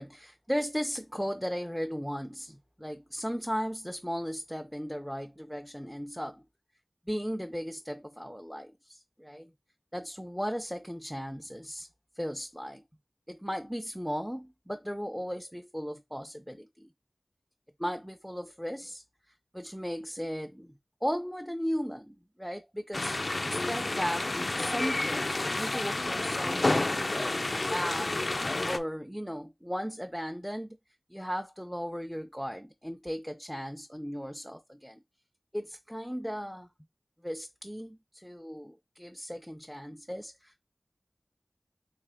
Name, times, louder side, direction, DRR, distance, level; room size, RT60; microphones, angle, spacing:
voice 1, 0.0-6.4 7.1-9.5 9.9-11.9 12.2-12.8 13.3-16.9 17.8-19.0 19.5-20.7 21.0-28.1 28.7-30.8 31.1-35.0 35.5-36.7 37.2-40.7, equal, ahead, 0.5 m, -36 dB
sound 1, 22.9-28.8, left 2 dB, 60° left, 0.3 m, -30 dB
3.3 x 3.2 x 3.6 m
wide cardioid pair, 40°, 0 cm